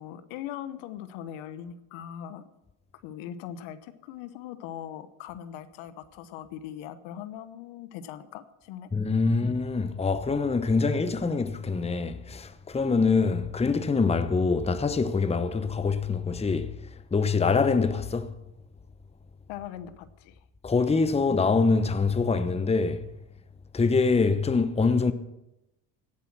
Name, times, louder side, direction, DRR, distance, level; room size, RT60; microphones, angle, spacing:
voice 1, 0.0-2.4 3.0-8.9 9.2-9.4 19.5-20.4, left 10 dB, 70° left, 1.1 m, -40 dB
voice 2, 8.9-18.4 20.6-23.1 23.7-25.1, left 4 dB, 15° left, 0.9 m, -25 dB
16.5 x 8.3 x 6.0 m
hypercardioid pair, 75°, 48 cm